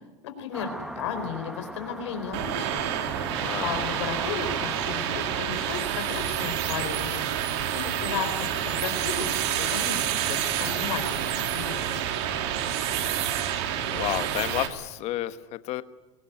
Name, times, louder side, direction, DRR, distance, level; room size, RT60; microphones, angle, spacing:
voice 1, 0.2-0.7 1.0-2.8 3.6-7.3 7.7-12.0, left 7 dB, 85° left, 7 dB, 4.4 m, -34 dB
sound 1, 0.5-5.8, right 1 dB, 5° right, 1.4 m, -39 dB
sound 2, 2.3-14.7, right 10 dB, 70° right, 2.9 m, -28 dB
voice 2, 3.4-3.8 13.9-15.8, left 15 dB, 50° left, 12 dB, 1.3 m, -31 dB
23.0 x 19.0 x 9.2 m, 1.2 s
supercardioid pair, 125°, 14 cm